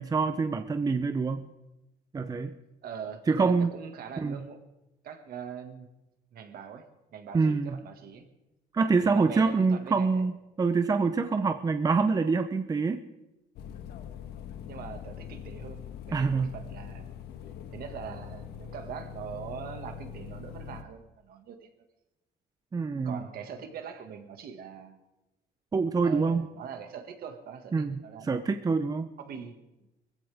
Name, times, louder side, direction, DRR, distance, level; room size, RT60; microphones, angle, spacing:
voice 1, 0.0-1.5 2.1-2.6 3.3-3.7 4.2-4.4 7.3-7.8 8.7-10.3 10.6-13.0 16.1-16.5 22.7-23.2 25.7-26.5 27.7-28.0 28.2-29.1, right 4 dB, 20° right, 9 dB, 0.7 m, -26 dB
voice 2, 2.8-4.6 5.0-5.9 6.3-6.9 7.1-8.3 9.0-10.3 14.6-17.1 17.7-21.7 23.0-25.0 26.0-28.5 29.2-29.6, right 7 dB, 65° right, 6 dB, 1.9 m, -42 dB
sound 1, 13.6-20.8, left 8 dB, 75° left, 1.4 m, -42 dB
20.0 x 15.5 x 3.5 m, 0.96 s
cardioid pair, 110°, 17 cm